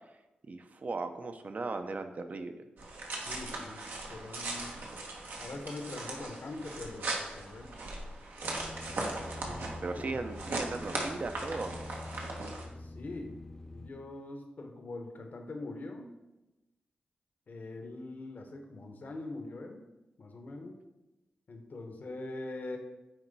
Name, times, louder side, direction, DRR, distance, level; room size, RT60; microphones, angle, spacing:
voice 1, 0.5-2.5 9.4-11.7, right 3 dB, 50° right, 7 dB, 0.6 m, -37 dB
sound 1, 2.8-12.6, right 2 dB, 80° right, 1.1 m, -39 dB
voice 2, 3.2-3.8 4.1-4.7 5.4-7.7 9.4-10.3 12.8-13.4 13.7-16.1 17.5-19.9 20.2-20.7 21.5-22.8, left 2 dB, 60° left, 3 dB, 1.0 m, -43 dB
sound 2, 8.4-13.9, left 2 dB, 20° left, 0.4 m, -46 dB
9.0 x 3.0 x 4.0 m, 1.0 s
cardioid pair, 60°, 3 cm